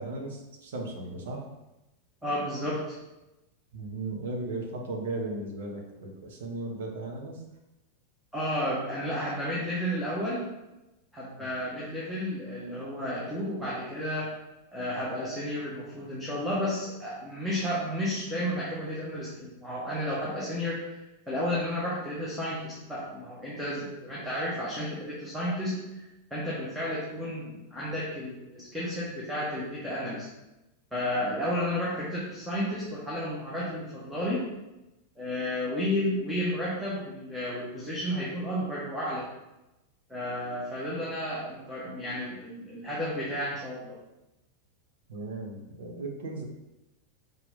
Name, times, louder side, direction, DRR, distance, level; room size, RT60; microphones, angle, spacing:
voice 1, 0.0-1.4 3.7-7.4 11.4-11.5 45.1-46.4, right 2 dB, 60° right, 1 dB, 1.4 m, -36 dB
voice 2, 2.2-3.0 8.3-10.5 11.1-14.3 14.7-26.0 26.3-30.3 30.9-34.4 35.2-39.3 40.1-44.0, equal, 5° right, -7 dB, 1.5 m, -32 dB
5.6 x 4.8 x 3.8 m, 0.97 s
figure-of-eight pair, 90°, 0 cm